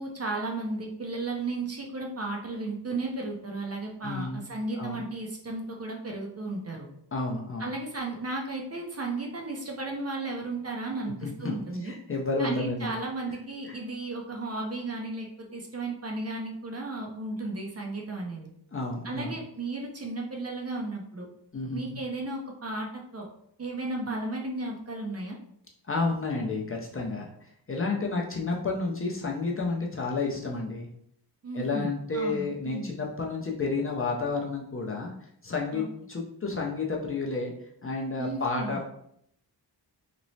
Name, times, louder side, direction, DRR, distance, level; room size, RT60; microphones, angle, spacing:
voice 1, 0.0-6.9 7.6-11.9 12.4-18.5 19.0-21.3 21.7-23.3 23.6-25.4 31.4-32.9 35.7-35.8 38.2-38.8, right 2 dB, 35° right, 0 dB, 0.4 m, -34 dB
voice 2, 4.0-4.4 4.7-5.0 7.1-7.7 11.2-11.5 11.8-12.9 13.7-13.8 18.7-19.3 21.5-22.0 25.9-27.3 27.7-30.9 31.5-35.1 35.4-37.5 37.8-38.9, left 3 dB, 30° left, -1 dB, 0.4 m, -31 dB
2.9 x 2.0 x 2.6 m, 0.70 s
wide cardioid pair, 105°, 43 cm